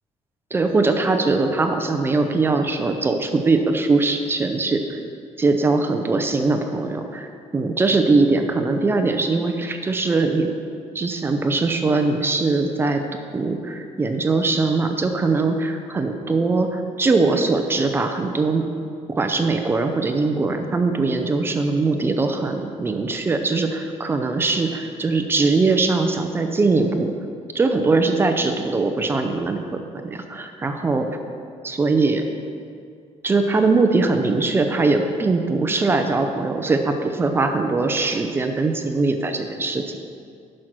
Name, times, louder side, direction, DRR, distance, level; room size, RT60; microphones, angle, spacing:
voice 1, 0.5-5.0 5.4-7.3 7.5-10.5 10.9-13.0 13.3-18.6 19.2-27.1 27.5-31.1 31.6-32.2 33.2-40.0, right 3 dB, 20° right, 5 dB, 0.6 m, -21 dB
10.5 x 6.3 x 6.1 m, 2.3 s
cardioid pair, 175°, 13 cm